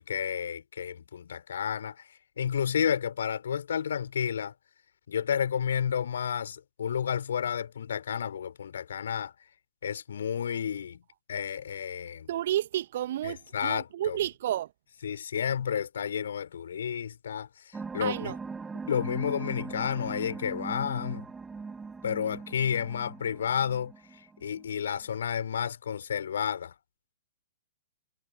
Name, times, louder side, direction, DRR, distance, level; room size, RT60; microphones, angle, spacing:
voice 1, 0.0-2.0 2.4-4.5 5.1-9.3 9.8-11.0 11.3-12.3 13.2-14.2 15.0-17.5 17.9-18.3 18.9-21.3 22.0-23.9 24.4-26.7, left 8 dB, 60° left, 4.2 m, -31 dB
voice 2, 12.3-14.7 18.0-18.4, right 12 dB, 50° right, 1.4 m, -31 dB
sound 1, 17.7-24.8, right 4 dB, 10° right, 6.6 m, -40 dB
figure-of-eight pair, 110°, 0 cm